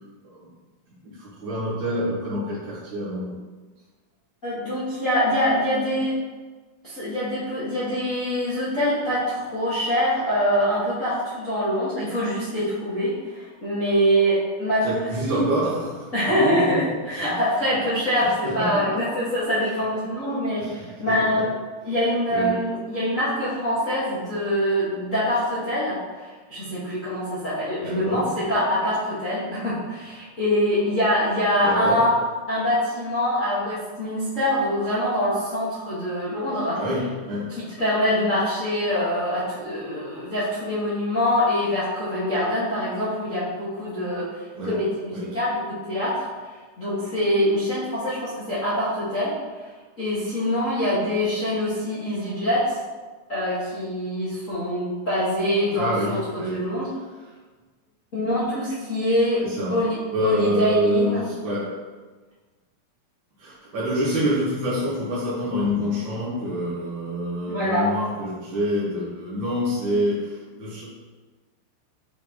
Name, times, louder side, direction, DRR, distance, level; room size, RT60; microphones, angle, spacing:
voice 1, 1.0-3.4 14.8-16.8 17.1-17.3 18.4-19.0 20.6-21.4 22.3-22.6 27.8-28.4 31.6-32.0 36.7-37.5 44.5-44.8 45.1-45.3 55.7-56.7 59.4-59.8 60.1-61.8 63.4-70.8, equal, 55° right, -9 dB, 1.3 m, -27 dB
voice 2, 4.4-6.1 6.8-15.5 16.1-21.5 21.8-32.1 32.5-36.8 37.6-44.2 44.6-46.3 46.8-49.3 50.0-52.8 53.3-56.9 58.1-59.4 59.7-61.2 67.5-67.9, equal, 55° left, -12 dB, 0.8 m, -24 dB
8.0 x 4.4 x 2.9 m, 1.3 s
omnidirectional pair, 4.2 m